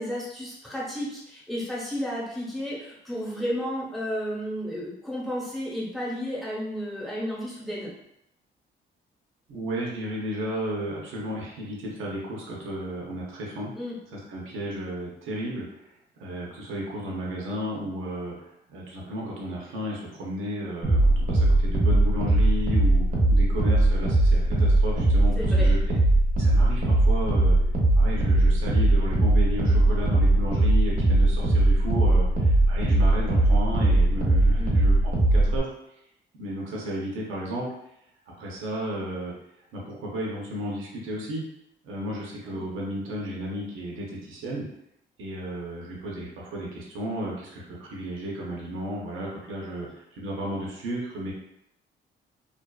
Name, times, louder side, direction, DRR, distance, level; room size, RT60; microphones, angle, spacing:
voice 1, 0.0-7.9 13.7-14.0 25.4-25.7 34.6-34.8 42.4-42.6 49.6-49.7, equal, ahead, -6 dB, 1.0 m, -32 dB
voice 2, 9.5-13.7 14.1-15.7 16.2-25.8 26.3-27.6 27.9-35.7 36.4-37.7 38.4-39.3 39.7-41.4 41.8-44.6 45.2-51.3, equal, 85° right, -3 dB, 0.7 m, -33 dB
sound 1, 20.8-35.6, right 1 dB, 40° right, 0.7 m, -20 dB
2.5 x 2.4 x 2.3 m, 0.79 s
cardioid pair, 90°, 20 cm